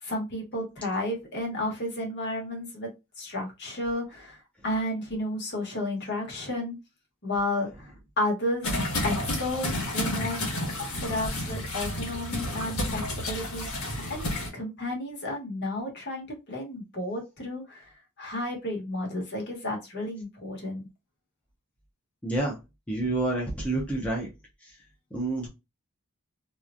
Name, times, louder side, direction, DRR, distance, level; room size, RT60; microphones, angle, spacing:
voice 1, 0.0-2.9 3.2-6.8 7.2-8.7 9.0-10.4 10.9-13.7 14.1-20.9, left 1 dB, 50° left, 0 dB, 1.3 m, -32 dB
sound 1, 8.6-14.5, left 1 dB, 70° left, 1.4 m, -31 dB
voice 2, 22.2-22.6 22.9-24.3 25.1-25.5, right 2 dB, 5° left, -3 dB, 0.7 m, -28 dB
3.0 x 2.4 x 2.3 m, 0.24 s
head